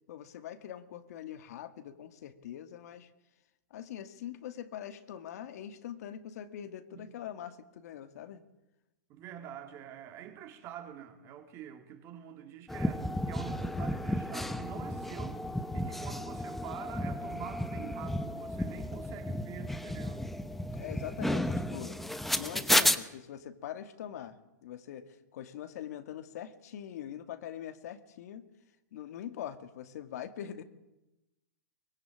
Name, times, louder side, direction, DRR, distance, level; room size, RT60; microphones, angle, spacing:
voice 1, 0.1-3.1 3.7-8.4 20.8-22.0 22.3-28.5 28.9-30.6, left 10 dB, 55° left, 2.2 m, -43 dB
voice 2, 9.1-15.4 15.7-20.3, right 9 dB, 25° right, 3.3 m, -46 dB
sound 1, 12.7-23.0, left 1 dB, ahead, 0.9 m, -33 dB
23.5 x 22.5 x 8.9 m
hypercardioid pair, 160°, 10 cm